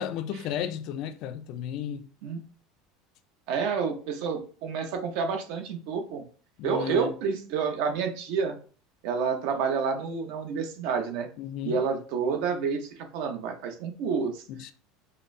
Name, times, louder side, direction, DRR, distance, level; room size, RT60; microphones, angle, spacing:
voice 1, 0.0-2.1 6.6-7.1 11.4-11.8 14.5-14.7, left 9 dB, 50° left, 0.3 m, -34 dB
voice 2, 3.5-6.2 6.6-8.6 9.0-11.3 11.6-14.4, right 5 dB, 60° right, 0.7 m, -29 dB
5.2 x 2.0 x 2.6 m
cardioid pair, 160°, 0 cm